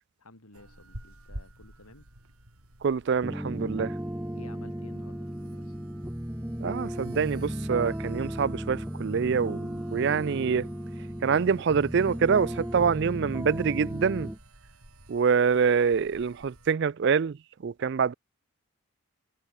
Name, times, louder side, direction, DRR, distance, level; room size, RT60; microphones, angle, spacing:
voice 1, 0.2-2.0 4.3-5.8, left 2 dB, 90° left, 5.1 m, -53 dB
sound 1, 0.5-16.7, right 1 dB, 85° right, 6.0 m, -51 dB
voice 2, 2.8-3.9 6.6-10.7 11.2-14.3 15.1-17.4 17.6-18.1, right 6 dB, 50° right, 0.4 m, -25 dB
sound 2, 3.2-14.4, equal, 10° right, 1.0 m, -35 dB
head